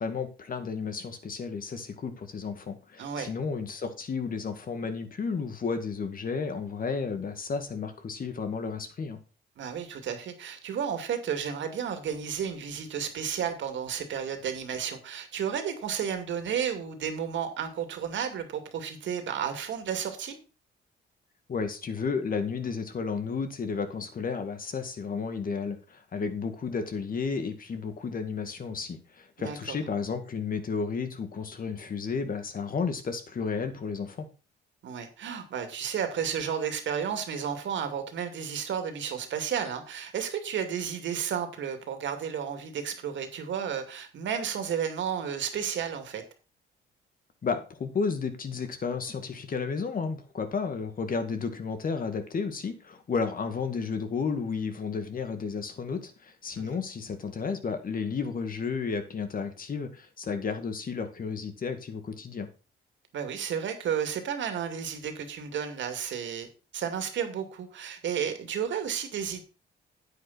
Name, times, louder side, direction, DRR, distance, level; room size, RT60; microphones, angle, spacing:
voice 1, 0.0-9.2 21.5-34.3 47.4-62.5, left 5 dB, 45° left, 2.1 m, -32 dB
voice 2, 3.0-3.3 9.6-20.4 29.4-29.8 34.8-46.2 56.6-56.8 63.1-66.5 66.7-69.4, right 8 dB, 70° right, 2.4 m, -32 dB
9.5 x 8.9 x 4.2 m
cardioid pair, 90°, 20 cm